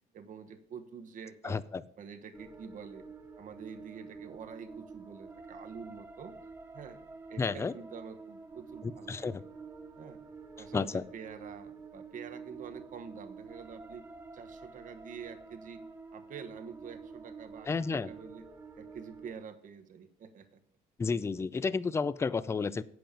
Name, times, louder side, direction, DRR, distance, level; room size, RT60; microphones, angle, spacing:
voice 1, 0.1-1.6 2.0-3.1 3.4-6.3 6.7-7.0 7.3-9.3 10.0-10.2 10.6-14.1 14.3-15.8 16.1-18.4 18.7-20.6, right 6 dB, 50° right, 7 dB, 1.2 m, -47 dB
voice 2, 1.4-1.8 7.4-7.7 8.8-9.4 10.7-11.0 17.7-18.1 21.0-22.8, left 4 dB, 15° left, 17 dB, 0.4 m, -31 dB
sound 1, 2.3-19.3, right 4 dB, 15° right, 1.4 m, -49 dB
9.0 x 7.8 x 5.0 m, 0.73 s
cardioid pair, 110°, 17 cm